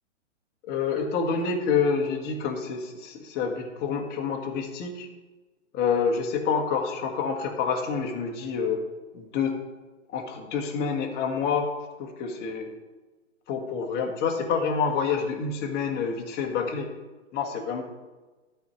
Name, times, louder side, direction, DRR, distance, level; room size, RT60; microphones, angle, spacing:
voice 1, 0.6-5.1 5.7-8.8 9.1-9.6 10.1-11.7 12.0-12.7 13.5-16.9 17.3-17.8, left 5 dB, 25° left, 2 dB, 1.4 m, -27 dB
12.5 x 4.5 x 5.2 m, 1.2 s
figure-of-eight pair, 115°, 37 cm